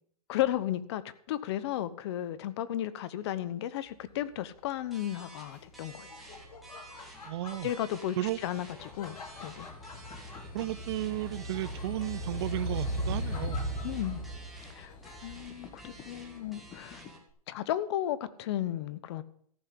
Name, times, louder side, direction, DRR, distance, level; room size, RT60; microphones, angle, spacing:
voice 1, 0.3-1.0 1.3-6.1 7.6-8.2 8.4-9.1 9.4-9.7 13.8-14.2 14.7-14.9 15.2-17.0 17.5-19.2, left 12 dB, 45° left, 15 dB, 0.9 m, -34 dB
sound 1, 4.9-17.3, right 2 dB, ahead, 2.3 m, -52 dB
Laughter, 5.5-15.5, left 4 dB, 85° left, 2.5 m, -51 dB
sound 2, 5.8-17.1, equal, 20° left, 1.4 m, -39 dB
voice 2, 7.2-7.7 8.2-8.4 10.5-13.6, right 15 dB, 45° right, 18 dB, 0.6 m, -34 dB
14.0 x 5.7 x 8.3 m, 0.63 s
hypercardioid pair, 145°, 19 cm